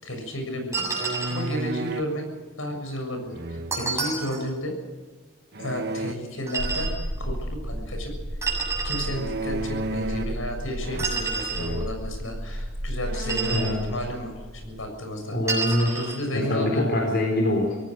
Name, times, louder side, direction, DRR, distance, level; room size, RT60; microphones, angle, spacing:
voice 1, 0.0-2.2 2.6-4.8 5.6-8.1 8.8-15.4 15.7-16.9, equal, 80° left, 5 dB, 6.9 m, -33 dB
sound 1, 0.7-1.5 3.7-4.4 6.5-7.0 8.4-9.1 11.0-11.7 13.1-13.7 15.5-16.2, right 4 dB, 15° right, 7.8 m, -29 dB
sound 2, 0.8-2.2 3.3-4.0 5.5-6.1 9.1-10.4 10.8-11.3 11.6-12.0 12.6-12.7 13.0-13.8, right 2 dB, 55° right, 1.4 m, -32 dB
sound 3, 6.6-15.1, equal, 85° right, 4.3 m, -34 dB
voice 2, 13.5-13.9 15.3-16.0 16.3-17.8, left 1 dB, 55° left, 1 dB, 4.4 m, -24 dB
25.5 x 17.5 x 6.5 m, 1.4 s
head